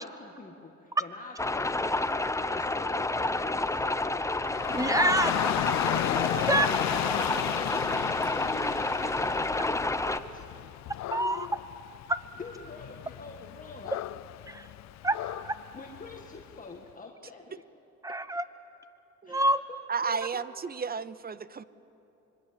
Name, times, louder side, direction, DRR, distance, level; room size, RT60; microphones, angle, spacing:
voice 1, 0.0-4.2 6.3-10.5 12.4-14.0 15.4-17.6 19.2-20.4, left 3 dB, 25° left, 1 dB, 1.9 m, -46 dB
sound 1, 1.4-10.2, left 2 dB, 10° left, 0.7 m, -29 dB
Dog / Rain, 4.4-16.5, left 14 dB, 65° left, 0.5 m, -34 dB
voice 2, 4.7-5.6 6.0-6.1 6.5-6.7 11.1-11.5 12.1-12.2 14.5-14.7 15.0-15.2 15.4-15.5 18.0-18.4 19.3-19.6, right 1 dB, 10° right, 12 dB, 1.1 m, -27 dB
voice 3, 19.9-21.6, right 5 dB, 30° right, 17 dB, 0.7 m, -33 dB
26.0 x 22.5 x 7.7 m, 2.9 s
cardioid pair, 90°, 30 cm